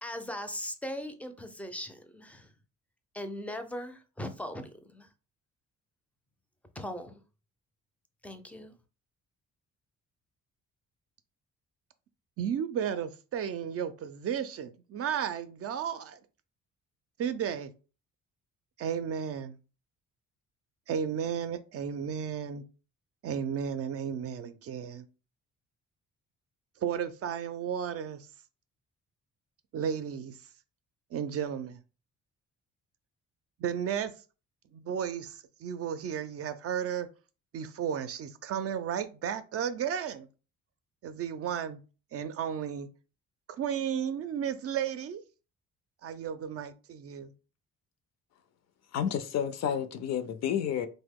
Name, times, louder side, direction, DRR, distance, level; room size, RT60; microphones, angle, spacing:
voice 1, 0.0-2.5 3.1-5.1 6.8-7.2 8.2-8.7, left 1 dB, 5° left, 0.4 m, -39 dB
voice 2, 12.4-16.2 17.2-17.7 18.8-19.5 20.9-22.6 23.2-25.1 26.8-28.3 29.7-30.4 31.1-31.8 33.6-34.1 34.7-37.1 37.5-40.3 41.0-41.8 42.1-42.9 43.5-45.2 46.0-47.3, right 8 dB, 50° right, 0.4 m, -33 dB
voice 3, 48.9-50.9, left 8 dB, 60° left, 0.5 m, -30 dB
2.9 x 2.1 x 3.5 m
cardioid pair, 85°, 30 cm